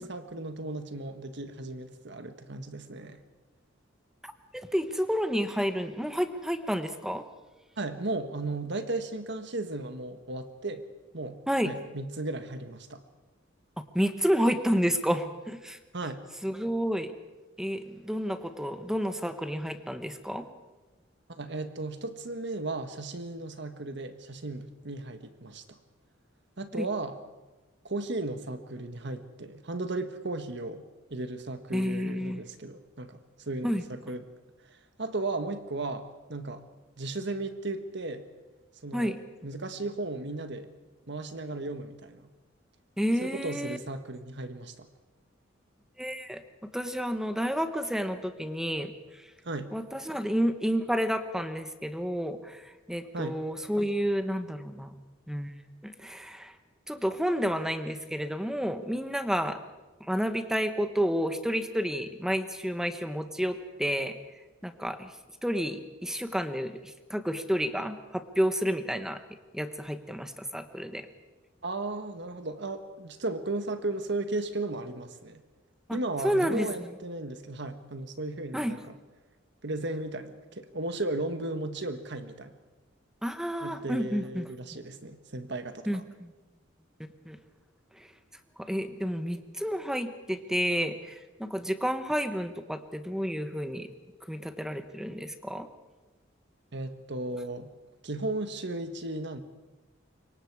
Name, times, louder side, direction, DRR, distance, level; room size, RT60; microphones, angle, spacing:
voice 1, 0.0-3.2 7.8-10.8 11.1-13.0 15.9-16.2 21.3-25.8 26.6-27.1 27.8-34.3 35.0-36.6 37.0-38.2 38.8-39.1 39.4-40.7 41.1-42.3 43.2-44.9 49.4-49.7 53.1-53.4 71.6-75.4 75.9-78.8 79.6-82.5 83.6-86.0 96.7-97.7 98.0-99.4, right 2 dB, 65° right, 9 dB, 1.6 m, -35 dB
voice 2, 4.5-7.2 11.5-11.7 13.9-15.8 16.4-17.1 17.6-20.5 26.8-26.9 31.7-32.4 33.6-33.8 38.9-39.2 43.0-43.8 46.0-48.9 49.2-49.3 49.7-55.0 55.3-55.5 55.8-56.5 56.9-59.6 60.1-64.1 64.6-65.1 65.4-69.2 69.5-71.1 75.9-76.0 76.2-76.9 78.5-78.7 83.2-84.5 85.9-86.3 87.2-87.4 87.9-88.1 88.6-93.9 94.3-95.7, equal, 5° right, 9 dB, 1.2 m, -30 dB
26.0 x 23.0 x 4.9 m, 1.2 s
head